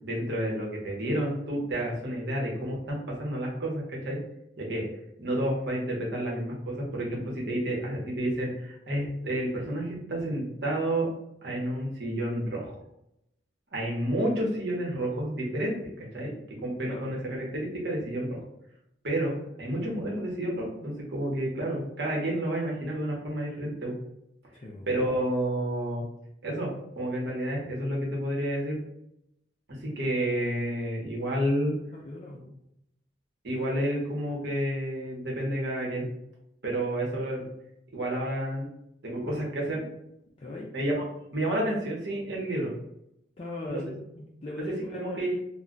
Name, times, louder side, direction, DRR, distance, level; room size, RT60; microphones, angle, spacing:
voice 1, 0.0-4.2 4.6-4.8 5.2-11.1 11.4-12.8 13.7-18.4 19.0-23.9 24.9-26.0 26.4-28.8 29.7-31.7 33.4-36.1 36.6-37.5 37.9-38.7 39.0-39.8 40.7-41.0 41.3-42.7 43.7-43.8 44.6-45.4, right 1 dB, 55° right, -2 dB, 0.9 m, -30 dB
voice 2, 24.5-24.9 31.9-32.5 40.4-40.7 43.4-45.2, left 2 dB, 30° left, -3 dB, 0.3 m, -39 dB
2.3 x 2.2 x 3.8 m, 0.79 s
head